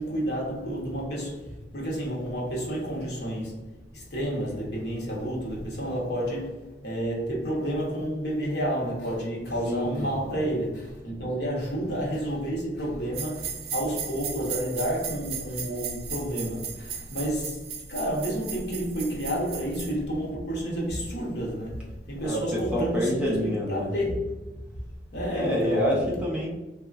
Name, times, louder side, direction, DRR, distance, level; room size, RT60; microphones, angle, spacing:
voice 1, 0.0-17.6 17.9-24.3 25.1-25.9, equal, 65° left, 0.9 m, -30 dB
voice 2, 9.5-10.2 22.2-24.0 25.3-26.5, equal, 5° right, 0.5 m, -27 dB
sound 1, 13.1-19.9, right 7 dB, 60° right, 0.4 m, -37 dB
2.9 x 2.3 x 2.4 m
head